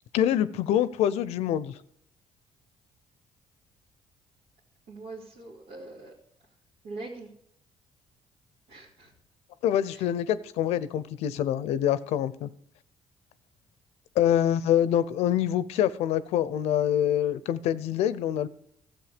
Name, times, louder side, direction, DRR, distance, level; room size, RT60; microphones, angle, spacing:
voice 1, 0.1-1.7 9.6-12.5 14.2-18.5, left 10 dB, 80° left, 16 dB, 0.6 m, -25 dB
voice 2, 4.9-6.1 6.8-7.3 8.7-9.1 9.9-10.1, right 3 dB, 90° right, -6 dB, 2.3 m, -42 dB
13.0 x 7.7 x 5.1 m, 0.72 s
supercardioid pair, 70°, 11 cm